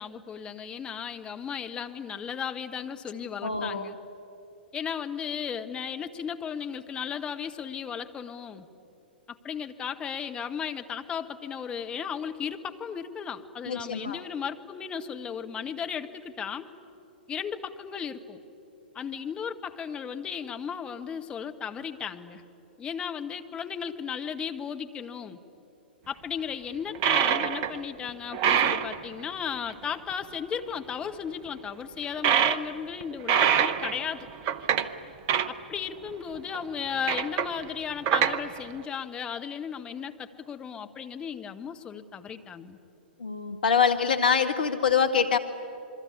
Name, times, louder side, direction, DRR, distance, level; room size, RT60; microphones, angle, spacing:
voice 1, 0.0-4.0 4.7-8.7 9.3-16.7 17.3-18.4 18.9-22.4 22.8-25.4 26.1-34.3 35.5-42.8, left 7 dB, 15° left, 6 dB, 1.3 m, -35 dB
voice 2, 3.4-3.9 13.7-14.2 43.2-45.4, left 6 dB, 60° left, 7 dB, 1.5 m, -24 dB
sound 1, 26.9-27.8 28.1-29.0 29.7-29.8 30.1-30.2 32.2-32.7 33.0-34.9 35.3-35.5 36.4-36.6 37.1-37.6 38.1-38.6, right 8 dB, 35° right, 0.9 m, -24 dB
27.0 x 22.5 x 9.8 m, 2.8 s
figure-of-eight pair, 105°, 5 cm